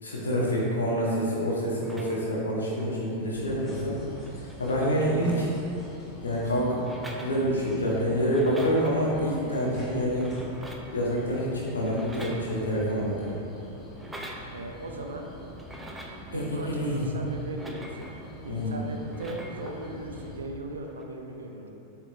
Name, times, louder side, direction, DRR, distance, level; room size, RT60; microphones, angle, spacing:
voice 1, 0.0-3.9 4.3-5.5 6.2-6.8 7.2-10.3 10.9-13.4 16.3-17.0 18.4-18.8, equal, 75° left, -5 dB, 1.5 m, -27 dB
sound 1, 1.8-2.5 3.6-3.7 3.9-5.9 6.8-7.8 8.1-9.0 10.0-11.0 11.8-12.9 13.9-14.5 15.5-16.3 17.4-18.3 19.0-19.9 20.9-21.0, right 1 dB, 10° right, 0.7 m, -44 dB
sound 2, 3.3-20.4, equal, 20° left, 1.3 m, -44 dB
voice 2, 14.5-15.3 16.3-18.1 18.4-21.7, right 2 dB, 70° right, 2 dB, 0.7 m, -38 dB
7.3 x 4.6 x 3.4 m, 2.9 s
figure-of-eight pair, 90°, 0 cm